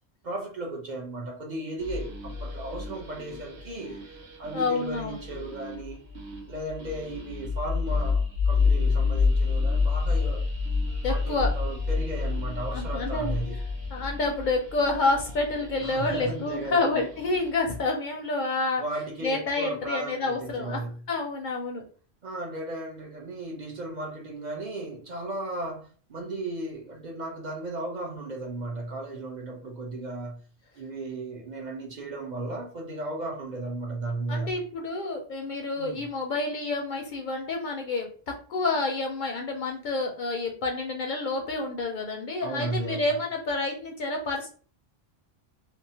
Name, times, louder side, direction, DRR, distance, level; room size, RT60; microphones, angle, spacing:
voice 1, 0.2-4.0 4.4-6.0 6.5-10.4 11.1-13.6 15.8-17.1 18.8-21.0 22.2-30.4 30.8-34.5 35.8-36.0 42.4-43.0, right 2 dB, 50° right, 0.6 m, -35 dB
sound 1, 1.8-17.7, left 4 dB, 85° right, 1.0 m, -29 dB
voice 2, 4.5-5.2 11.0-11.5 12.7-13.4 13.9-18.8 19.2-20.8 21.1-21.8 34.3-44.5, left 3 dB, 60° left, 0.6 m, -29 dB
2.8 x 2.1 x 2.7 m
omnidirectional pair, 1.1 m